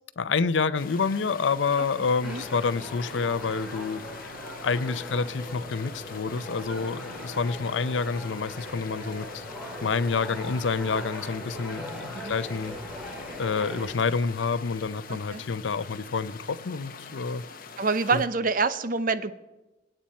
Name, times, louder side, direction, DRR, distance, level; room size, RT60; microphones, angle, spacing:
voice 1, 0.2-4.0 4.6-9.5 9.8-12.8 13.4-17.4 18.1-18.2, left 5 dB, 80° left, 0.6 m, -28 dB
sound 1, 0.7-18.3, left 5 dB, 50° left, 1.1 m, -45 dB
sound 2, 1.4-17.5, right 5 dB, 25° right, 1.6 m, -58 dB
sound 3, 2.2-13.9, left 1 dB, 5° right, 2.9 m, -40 dB
voice 2, 15.1-15.4 17.8-19.3, right 4 dB, 50° right, 0.7 m, -26 dB
25.5 x 8.9 x 4.3 m
head